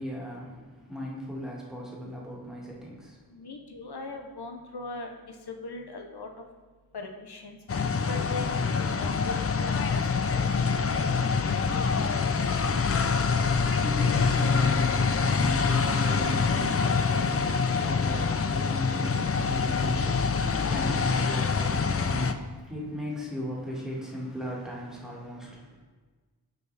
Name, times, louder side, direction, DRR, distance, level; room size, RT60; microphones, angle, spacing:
voice 1, 0.0-3.3 13.0-25.8, equal, ahead, -4 dB, 1.8 m, -37 dB
voice 2, 3.3-5.1 5.5-6.3 6.9-7.6 8.0-10.0 10.3-11.1 11.4-12.0, left 3 dB, 80° left, 3 dB, 0.7 m, -40 dB
sound 1, 7.7-22.3, left 5 dB, 40° left, 0.4 m, -25 dB
8.2 x 4.7 x 3.3 m, 1.4 s
wide cardioid pair, 45°, 39 cm